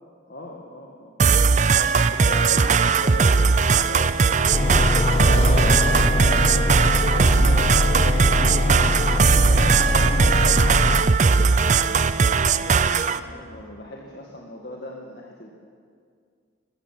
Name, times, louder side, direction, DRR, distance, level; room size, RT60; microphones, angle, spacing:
voice 1, 0.3-1.1 1.7-15.5, left 1 dB, 55° left, -2 dB, 2.0 m, -40 dB
sound 1, 1.2-13.2, right 5 dB, 40° right, 0.5 m, -19 dB
sound 2, 4.5-11.0, left 1 dB, 30° left, 0.6 m, -22 dB
21.0 x 16.0 x 7.7 m, 2.1 s
head